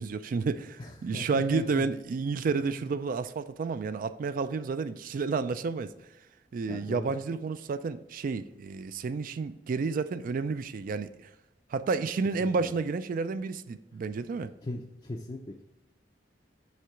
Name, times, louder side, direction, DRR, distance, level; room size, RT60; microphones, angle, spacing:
voice 1, 0.0-5.9 6.5-11.3 11.7-14.5, right 4 dB, 50° right, 0.3 m, -31 dB
voice 2, 0.8-1.9 2.5-2.7 6.7-7.1 12.4-12.7 14.4-15.6, left 2 dB, 30° left, 0.4 m, -39 dB
6.4 x 3.8 x 4.5 m
head